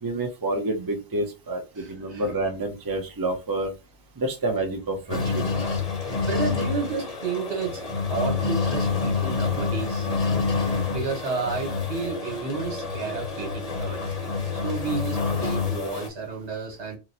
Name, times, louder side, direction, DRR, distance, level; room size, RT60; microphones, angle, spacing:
voice 1, 0.0-3.7 4.2-5.4, right 2 dB, 25° right, 0.6 m, -28 dB
voice 2, 1.8-2.2 5.1-5.3 6.2-10.1 10.9-14.2 14.5-17.0, right 4 dB, 75° right, 1.5 m, -31 dB
sound 1, 5.1-16.1, left 4 dB, 40° left, 0.8 m, -27 dB
2.9 x 2.1 x 3.9 m
omnidirectional pair, 1.1 m